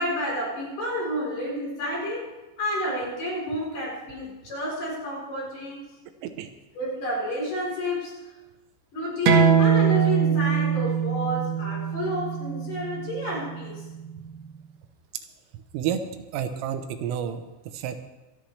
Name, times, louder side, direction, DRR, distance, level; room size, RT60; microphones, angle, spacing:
voice 1, 0.0-2.3 2.6-5.8 6.7-8.3 8.9-13.9, left 1 dB, 45° left, -4 dB, 5.1 m, -30 dB
sound 1, 9.3-14.4, right 7 dB, 65° right, 3.0 m, -23 dB
voice 2, 15.7-16.0 16.3-18.0, right 9 dB, 85° right, 8 dB, 3.6 m, -30 dB
26.0 x 10.0 x 3.3 m, 1.1 s
omnidirectional pair, 5.7 m